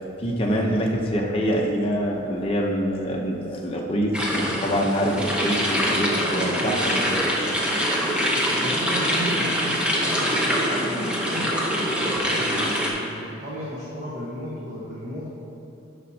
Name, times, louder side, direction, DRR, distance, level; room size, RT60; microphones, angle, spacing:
voice 1, 0.2-7.0, equal, 30° left, -1 dB, 0.7 m, -25 dB
sound 1, 4.1-12.9, equal, 5° right, 0.8 m, -24 dB
voice 2, 6.1-7.1 8.5-11.9 12.3-15.3, equal, 40° right, -7 dB, 1.1 m, -34 dB
11.0 x 6.4 x 2.8 m, 2.7 s
head